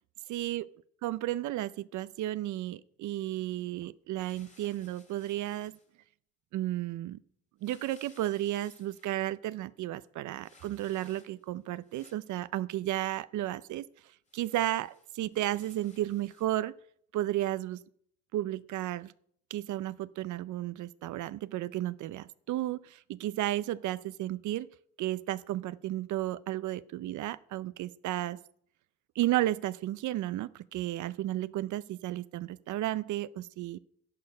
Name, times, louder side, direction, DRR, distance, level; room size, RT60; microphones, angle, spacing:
voice 1, 0.3-0.6 1.0-5.8 6.5-7.2 7.6-13.9 14.3-16.7 17.1-17.8 18.3-19.1 19.5-24.7 25.0-28.4 29.2-33.8, right 14 dB, 75° right, 16 dB, 0.5 m, -33 dB
sound 1, 4.2-5.9 7.6-9.2 10.4-11.5 11.8-12.4 14.3-16.5, left 3 dB, 25° left, 2.0 m, -61 dB
11.0 x 10.5 x 5.4 m, 0.67 s
cardioid pair, 90°, 30 cm